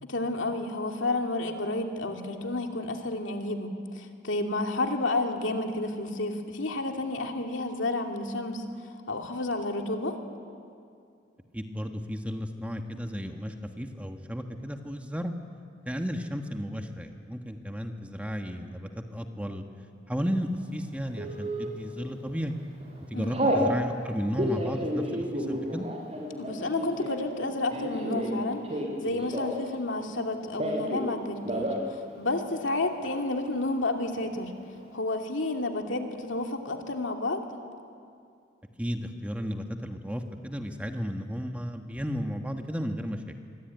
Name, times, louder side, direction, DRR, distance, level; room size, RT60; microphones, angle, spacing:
voice 1, 0.0-8.6 9.1-10.2 23.1-23.4 26.4-28.6 29.0-34.5 34.9-37.4, left 2 dB, 75° left, 3 dB, 2.6 m, -31 dB
voice 2, 11.5-15.3 15.8-19.6 20.1-22.5 23.1-25.9 38.8-43.3, equal, 5° right, 4 dB, 1.4 m, -34 dB
Telephone, 21.2-21.7 22.3-22.5 22.8-23.7 24.2-29.7 30.0-31.1 31.4-31.8 32.1-32.2 32.5-33.1, equal, 30° right, 6.3 m, -31 dB
26.5 x 24.0 x 9.3 m, 2.4 s
head